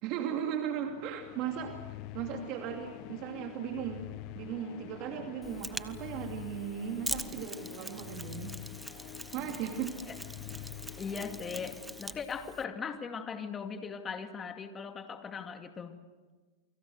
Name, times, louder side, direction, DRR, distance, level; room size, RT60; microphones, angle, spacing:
voice 1, 0.0-4.0 4.3-8.6 9.3-10.0, right 8 dB, 50° right, 3 dB, 2.7 m, -37 dB
sound 1, 0.8-12.6, left 15 dB, 50° left, 1.0 m, -46 dB
Mechanisms, 5.4-12.6, right 2 dB, 5° right, 1.1 m, -43 dB
voice 2, 11.0-16.0, left 6 dB, 25° left, 6 dB, 2.3 m, -39 dB
29.0 x 24.5 x 6.5 m, 1.3 s
hypercardioid pair, 125°, 0 cm